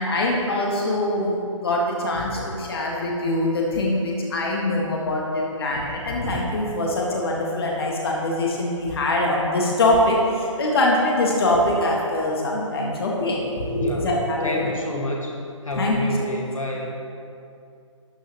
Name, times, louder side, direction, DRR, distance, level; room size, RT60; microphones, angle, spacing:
voice 1, 0.0-14.7 15.8-16.0, left 1 dB, 50° left, -2 dB, 1.7 m, -23 dB
voice 2, 13.8-14.1 14.4-15.3 15.6-16.9, left 1 dB, 80° left, -1 dB, 1.9 m, -28 dB
13.5 x 8.9 x 3.1 m, 2.4 s
figure-of-eight pair, 140°, 17 cm